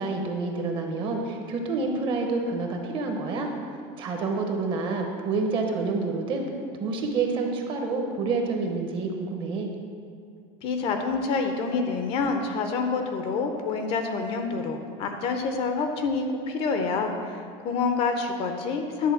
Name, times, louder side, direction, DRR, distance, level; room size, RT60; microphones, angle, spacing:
voice 1, 0.0-3.5 4.0-6.4 6.8-9.7, right 3 dB, 30° right, 3 dB, 0.9 m, -28 dB
voice 2, 10.6-19.1, left 4 dB, 35° left, 5 dB, 0.7 m, -27 dB
10.5 x 4.0 x 7.0 m, 2.4 s
supercardioid pair, 165°, 17 cm